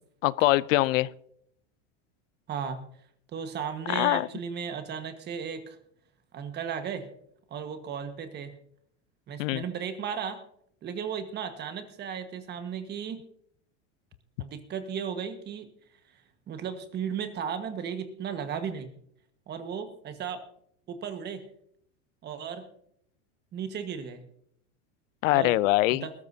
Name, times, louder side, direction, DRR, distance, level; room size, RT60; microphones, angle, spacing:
voice 1, 0.2-1.1 3.9-4.3 9.4-9.6 25.2-26.0, left 18 dB, 85° left, 20 dB, 0.6 m, -23 dB
voice 2, 2.5-2.8 3.3-5.8 6.3-7.1 7.5-8.5 9.3-10.4 10.8-13.2 14.4-15.7 16.5-18.9 19.5-20.4 20.9-21.4 22.2-22.7 23.5-24.2 25.3-25.6 25.9-26.1, right 7 dB, 25° right, 8 dB, 1.4 m, -35 dB
20.5 x 13.5 x 2.7 m, 0.69 s
supercardioid pair, 150°, 37 cm